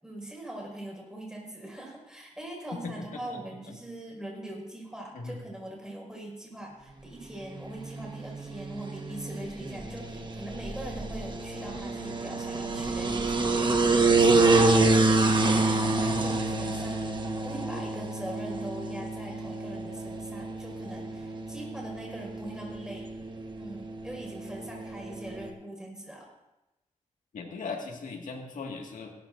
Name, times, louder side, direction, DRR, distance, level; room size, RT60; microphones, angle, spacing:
voice 1, 0.0-23.1 23.6-26.3, right 1 dB, 5° right, -1 dB, 5.4 m, -41 dB
sound 1, 7.4-25.5, right 3 dB, 35° right, 1.3 m, -28 dB
voice 2, 15.8-16.4 27.3-29.1, left 4 dB, 90° left, 2 dB, 1.9 m, -38 dB
17.5 x 13.0 x 2.6 m, 0.99 s
cardioid pair, 70°, 13 cm